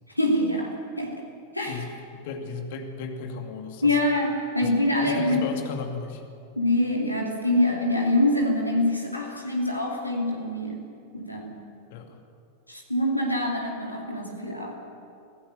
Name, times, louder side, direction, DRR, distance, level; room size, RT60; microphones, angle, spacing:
voice 1, 0.1-1.2 1.5-1.8 3.8-5.5 6.6-11.6 12.7-14.7, left 1 dB, 85° left, 0 dB, 2.5 m, -25 dB
voice 2, 1.7-4.0 4.6-4.7 5.0-6.2 11.9-12.2, left 5 dB, 50° left, 4 dB, 2.4 m, -35 dB
25.0 x 16.0 x 6.8 m, 2.5 s
figure-of-eight pair, 90°, 0 cm